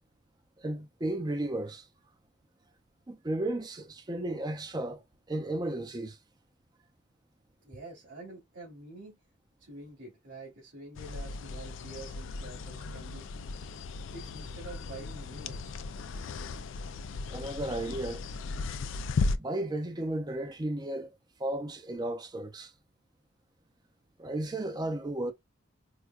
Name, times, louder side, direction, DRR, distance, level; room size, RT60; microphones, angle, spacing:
voice 1, 0.6-1.9 3.1-5.0 5.3-6.2 17.3-18.2 19.4-21.1 21.4-22.7 24.2-25.3, right 1 dB, 20° right, 0.6 m, -34 dB
voice 2, 7.6-9.2 9.6-13.4 14.1-15.8, right 2 dB, 80° right, 1.9 m, -47 dB
sound 1, 10.9-19.4, left 3 dB, 90° left, 0.4 m, -36 dB
4.7 x 2.2 x 2.4 m
head